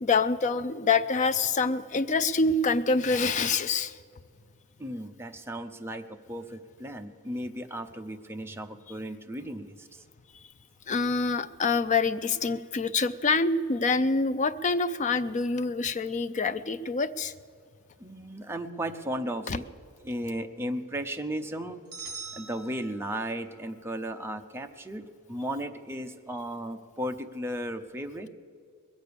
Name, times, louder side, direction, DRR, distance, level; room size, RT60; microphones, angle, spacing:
voice 1, 0.0-4.0 10.9-17.3 19.5-19.6, left 4 dB, 35° left, 13 dB, 0.4 m, -26 dB
voice 2, 4.8-10.0 18.0-19.6 20.0-21.8 22.3-28.3, right 1 dB, 10° right, 5 dB, 0.7 m, -35 dB
sound 1, 21.9-23.5, right 4 dB, 45° right, 2.7 m, -42 dB
21.0 x 8.1 x 6.9 m, 2.2 s
head